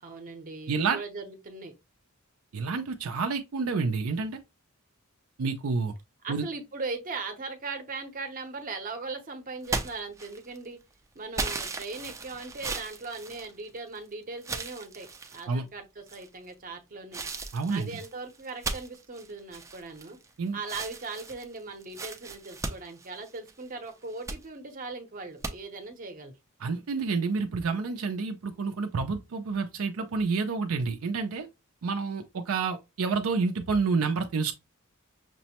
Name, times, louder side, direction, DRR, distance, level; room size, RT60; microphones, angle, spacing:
voice 1, 0.0-1.7 6.2-10.8 11.1-17.2 17.7-20.2 20.5-26.3, right 3 dB, 40° right, 0.8 m, -39 dB
voice 2, 0.7-1.0 2.5-4.4 5.4-5.9 6.3-6.5 15.5-15.6 17.5-18.0 20.4-20.6 26.6-31.5 31.8-34.5, right 4 dB, 70° right, 0.5 m, -29 dB
sound 1, 9.6-10.7 11.3-14.0 14.4-15.4 16.1-16.5 17.1-20.3 20.6-23.6 24.0-24.4 25.4-25.5, right 3 dB, 15° right, 0.4 m, -36 dB
5.9 x 2.1 x 2.8 m
head